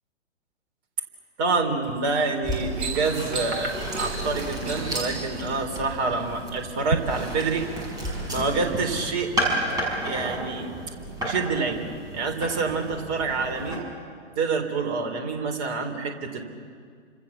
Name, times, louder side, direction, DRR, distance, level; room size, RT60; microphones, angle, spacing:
voice 1, 1.4-7.7 8.3-9.3 10.0-10.7 11.2-13.9 14.4-16.4, right 4 dB, 30° right, 4 dB, 3.8 m, -27 dB
sound 1, 1.8-2.1 2.5-5.1 5.9-6.4 6.8-7.0, right 4 dB, 65° right, 5.8 m, -33 dB
sound 2, 2.4-13.8, right 1 dB, 10° right, 6.4 m, -32 dB
30.0 x 26.5 x 7.4 m, 2.1 s
figure-of-eight pair, 120°, 36 cm